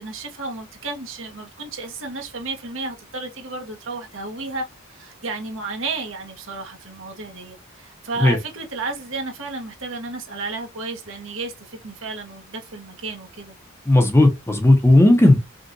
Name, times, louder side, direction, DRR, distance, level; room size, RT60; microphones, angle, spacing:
voice 1, 0.0-13.5, right 3 dB, 65° right, 1.3 m, -32 dB
voice 2, 13.9-15.4, left 1 dB, 10° left, 0.8 m, -14 dB
5.2 x 2.4 x 2.7 m
head